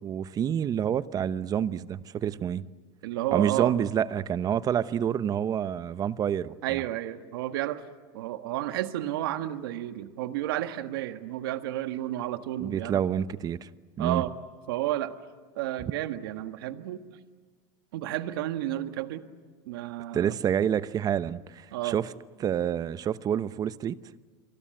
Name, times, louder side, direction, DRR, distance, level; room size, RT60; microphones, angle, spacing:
voice 1, 0.0-2.7 3.3-6.8 12.6-13.7 14.0-14.2 20.1-22.1 22.4-24.0, right 9 dB, 30° right, 0.9 m, -28 dB
voice 2, 3.0-3.7 6.6-7.8 8.1-13.0 14.0-14.3 14.7-15.1 15.5-17.0 17.9-19.2 19.7-20.4 21.7-22.0, right 14 dB, 80° right, 1.6 m, -31 dB
28.5 x 23.5 x 7.8 m
supercardioid pair, 125°, 12 cm